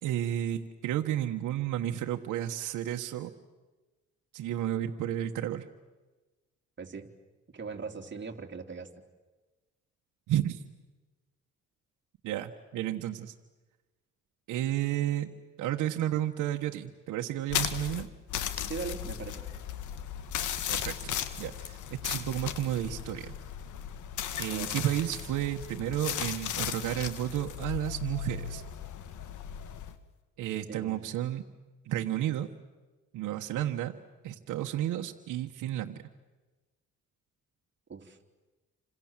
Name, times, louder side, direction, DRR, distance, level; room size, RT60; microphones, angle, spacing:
voice 1, 0.0-3.3 4.3-5.6 10.3-10.6 12.2-13.3 14.5-15.3 15.6-18.1 20.7-23.3 24.4-28.6 30.4-31.4 31.8-32.5 33.1-33.9 34.2-36.0, right 12 dB, 90° right, 3 dB, 1.5 m, -32 dB
voice 2, 6.8-7.1 7.5-8.9 18.6-19.5 24.5-24.7 30.7-31.1 37.9-38.2, right 5 dB, 40° right, 4 dB, 3.6 m, -40 dB
sound 1, 17.5-29.9, left 10 dB, 80° left, 2.1 m, -36 dB
30.0 x 26.5 x 7.5 m, 1.2 s
cardioid pair, 90°, 30 cm